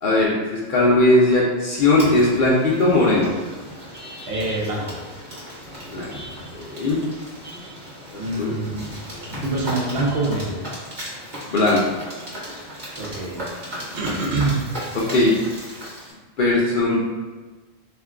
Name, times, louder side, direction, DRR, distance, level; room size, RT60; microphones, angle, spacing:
voice 1, 0.0-3.3 5.9-6.1 6.5-7.0 8.1-8.5 11.5-11.8 14.9-15.3 16.4-17.0, left 2 dB, 55° left, -5 dB, 0.6 m, -18 dB
sound 1, 1.7-16.1, equal, 40° right, 1.0 m, -36 dB
voice 2, 4.3-5.0 8.1-8.9 9.4-10.6 12.9-13.4 13.9-14.6, right 2 dB, 70° right, -2 dB, 0.8 m, -25 dB
2.5 x 2.2 x 3.6 m, 1.3 s
omnidirectional pair, 1.2 m